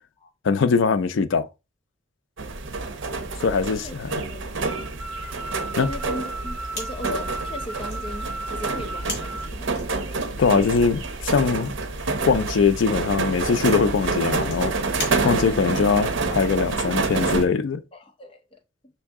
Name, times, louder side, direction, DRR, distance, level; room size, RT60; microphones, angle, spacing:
voice 1, 0.4-1.5 3.4-4.1 5.7-5.9 10.4-11.7 12.2-14.9 15.2-17.8, left 5 dB, 75° left, 0.4 m, -21 dB
sound 1, 2.4-17.4, right 3 dB, 80° right, 0.7 m, -28 dB
sound 2, 4.7-9.5, right 2 dB, 5° right, 0.3 m, -35 dB
voice 2, 5.8-10.1 15.1-15.8 17.9-18.6, left 1 dB, 30° left, 0.7 m, -38 dB
sound 3, 6.7-15.8, left 2 dB, 50° left, 2.1 m, -40 dB
5.6 x 2.6 x 3.5 m
head